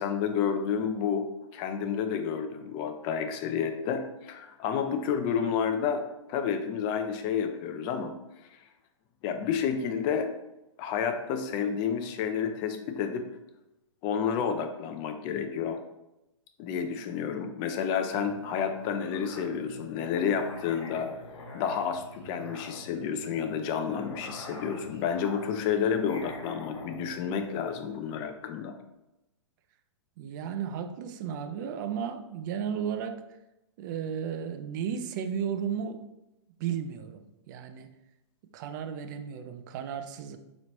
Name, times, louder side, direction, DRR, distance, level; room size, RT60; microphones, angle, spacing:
voice 1, 0.0-6.0 6.3-8.1 8.5-8.6 9.2-10.3 10.8-13.2 14.0-15.8 16.6-21.1 21.5-28.8, left 7 dB, 30° left, 7 dB, 0.4 m, -30 dB
Musical instrument, 18.1-28.2, left 1 dB, 60° left, 1.4 m, -45 dB
voice 2, 30.2-33.2 33.8-36.0 36.6-37.9 38.5-40.4, right 8 dB, 40° right, 8 dB, 0.4 m, -34 dB
3.8 x 3.0 x 3.0 m, 0.93 s
hypercardioid pair, 125°, 16 cm